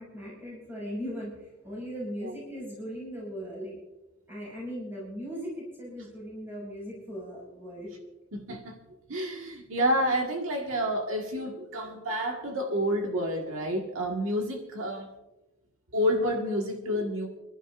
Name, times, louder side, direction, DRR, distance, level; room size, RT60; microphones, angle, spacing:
voice 1, 0.0-3.7 4.3-7.9, equal, 10° right, -6 dB, 6.4 m, -38 dB
voice 2, 8.3-8.7 9.1-15.1 15.9-17.3, equal, 70° right, 1 dB, 1.7 m, -29 dB
29.5 x 12.0 x 2.5 m, 1.0 s
head